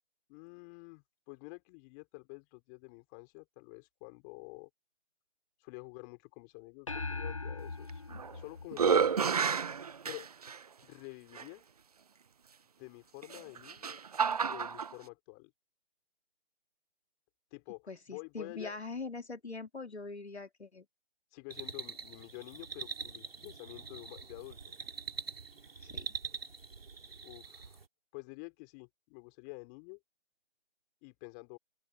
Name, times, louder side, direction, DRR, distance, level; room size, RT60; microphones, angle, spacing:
voice 1, 0.3-4.7 5.6-8.0 8.3-9.2 10.0-10.3 10.8-11.6 12.8-14.0 14.4-15.5 17.5-18.8 21.3-24.6 27.2-27.8 28.1-30.0 31.0-31.6, left 36 dB, 15° left, 4.2 m, -49 dB
sound 1, 6.9-9.5, left 3 dB, 30° left, 0.4 m, -40 dB
sound 2, 7.9-8.4 8.7-10.6 11.4-11.5 13.2-14.9, right 6 dB, 35° right, 0.8 m, -30 dB
voice 2, 17.9-20.9 25.8-26.1, left 3 dB, 85° left, 2.9 m, -43 dB
sound 3, 21.5-27.9, right 5 dB, 65° right, 3.8 m, -44 dB
open air
figure-of-eight pair, 155°, 32 cm